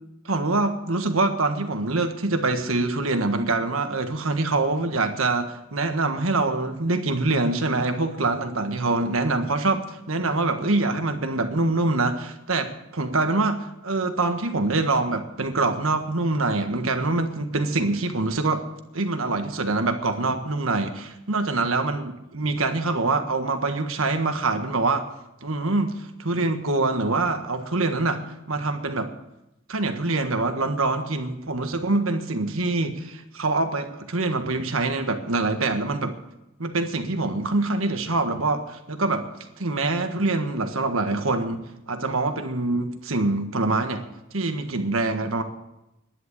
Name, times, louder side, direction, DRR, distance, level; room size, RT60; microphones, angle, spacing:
voice 1, 0.2-18.7 18.9-25.0 25.4-29.1 29.7-36.2 36.6-39.3 39.6-44.0 44.3-45.4, right 3 dB, 75° right, 7 dB, 1.5 m, -25 dB
11.0 x 10.5 x 8.4 m, 0.88 s
head